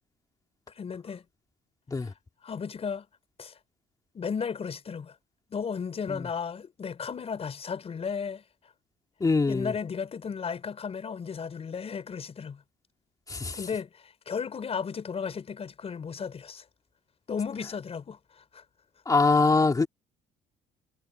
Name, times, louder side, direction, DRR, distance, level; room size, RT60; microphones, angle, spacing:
voice 1, 0.8-1.2 2.0-2.1 2.4-3.1 3.4-3.6 4.1-5.1 5.5-8.4 9.5-12.6 13.5-16.6 17.3-18.2 18.5-18.6, left 6 dB, 35° left, 5.0 m, -34 dB
voice 2, 9.2-9.7 13.3-13.6 19.1-19.9, left 3 dB, 20° left, 2.6 m, -23 dB
cardioid pair, 110°, 17 cm